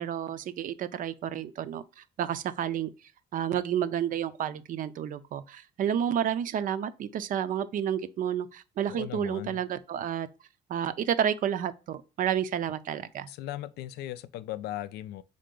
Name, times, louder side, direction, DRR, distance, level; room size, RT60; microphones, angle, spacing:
voice 1, 0.0-2.9 3.3-10.3 10.7-13.3, right 9 dB, 55° right, 0.5 m, -30 dB
voice 2, 8.9-9.6 13.3-15.2, left 14 dB, 75° left, 0.4 m, -37 dB
3.9 x 3.3 x 3.7 m
cardioid pair, 110°, 17 cm